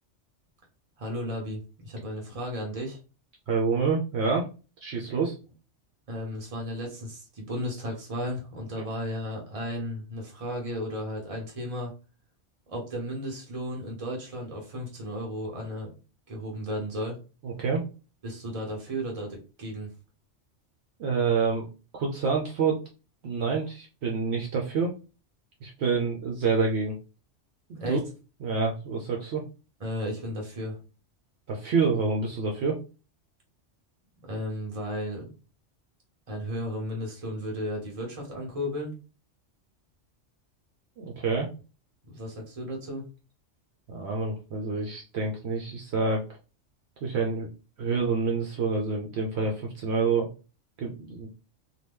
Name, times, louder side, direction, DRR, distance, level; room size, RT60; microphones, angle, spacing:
voice 1, 1.0-3.0 6.1-11.9 12.7-15.9 16.3-17.2 18.2-19.9 27.8-28.0 29.8-30.8 34.2-35.3 36.3-38.9 42.1-43.1, equal, 30° right, 0 dB, 0.9 m, -34 dB
voice 2, 3.5-4.5 4.8-5.3 17.4-17.8 21.0-21.7 21.9-22.8 23.2-24.9 25.6-27.0 27.7-28.0 28.4-29.4 31.5-32.8 41.0-41.5 43.9-46.3 47.0-47.5 47.8-50.3 50.8-51.3, right 4 dB, 70° right, 0 dB, 0.8 m, -27 dB
2.8 x 2.2 x 3.3 m, 0.33 s
omnidirectional pair, 1.2 m